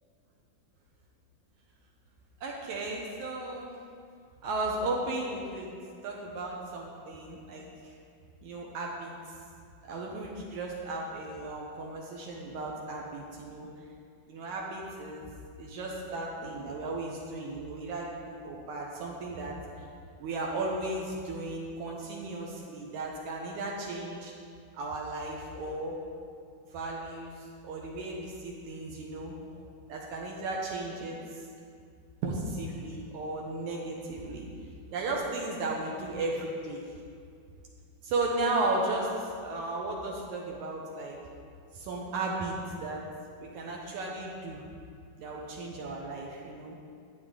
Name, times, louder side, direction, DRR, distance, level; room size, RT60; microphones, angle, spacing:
voice 1, 2.4-3.7 4.4-5.7 6.0-7.9 8.4-9.1 9.9-13.7 14.3-15.3 15.6-19.6 20.2-24.3 24.8-26.0 26.7-29.6 29.9-31.4 32.2-34.5 34.9-36.8 38.0-41.2 41.7-43.0 43.4-44.6 45.2-46.8, right 2 dB, 75° right, -2 dB, 2.1 m, -35 dB
10.5 x 8.3 x 3.7 m, 2.3 s
omnidirectional pair, 3.7 m